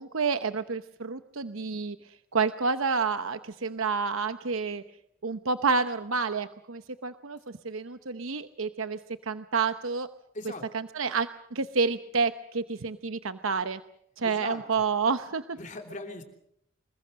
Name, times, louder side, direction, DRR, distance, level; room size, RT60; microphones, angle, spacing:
voice 1, 0.0-2.0 2.3-4.8 5.2-7.4 7.6-9.0 9.3-10.1 10.7-13.8 14.2-15.4, right 5 dB, 80° right, 10 dB, 0.9 m, -29 dB
voice 2, 14.2-14.6 15.6-16.2, left 2 dB, 35° left, 4 dB, 3.2 m, -39 dB
26.5 x 22.0 x 6.5 m, 0.72 s
head